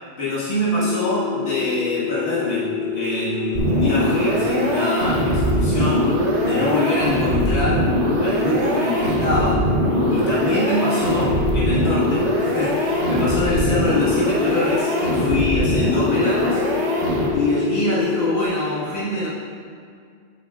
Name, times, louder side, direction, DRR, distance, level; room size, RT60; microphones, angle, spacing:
voice 1, 0.2-6.1 6.4-9.7 10.1-16.6 17.3-19.3, left 1 dB, 60° left, -9 dB, 2.1 m, -24 dB
sound 1, 0.7-18.5, left 6 dB, 40° left, 0.9 m, -26 dB
sound 2, 3.5-17.6, right 1 dB, 70° right, 1.4 m, -22 dB
9.0 x 8.1 x 2.5 m, 2.2 s
omnidirectional pair, 1.2 m